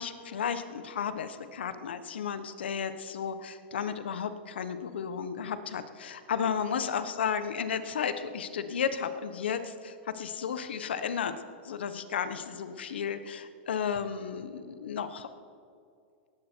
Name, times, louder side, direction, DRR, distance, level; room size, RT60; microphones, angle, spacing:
voice 1, 0.0-11.3 11.6-15.3, left 7 dB, 90° left, 11 dB, 1.2 m, -33 dB
18.5 x 14.5 x 4.6 m, 2.5 s
hypercardioid pair, 140°, 6 cm